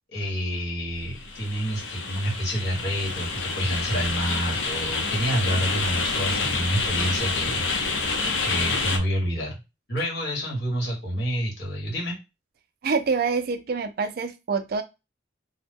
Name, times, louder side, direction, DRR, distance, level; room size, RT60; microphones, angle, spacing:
voice 1, 0.1-8.1 8.4-9.6 9.9-12.1, equal, 55° left, 1.6 m, -28 dB
sound 1, 0.9-9.0, left 3 dB, 75° left, 0.7 m, -28 dB
voice 2, 12.8-14.8, right 5 dB, 50° right, 0.4 m, -26 dB
2.8 x 2.1 x 3.5 m
head